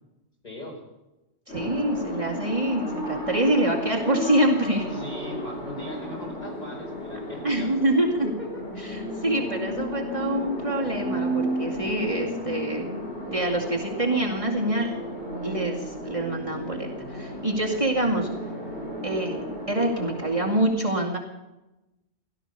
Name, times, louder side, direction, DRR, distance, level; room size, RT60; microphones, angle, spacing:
voice 1, 0.4-0.7 4.9-7.7 8.2-8.6, left 1 dB, 40° left, -1 dB, 5.1 m, -39 dB
sound 1, 1.5-20.6, equal, 75° left, 6.8 m, -33 dB
voice 2, 1.5-4.9 7.4-8.3 8.8-15.0 15.4-18.3 19.0-19.4 19.7-21.2, right 1 dB, 30° right, -2 dB, 2.3 m, -26 dB
17.0 x 12.5 x 6.8 m, 0.98 s
omnidirectional pair, 1.1 m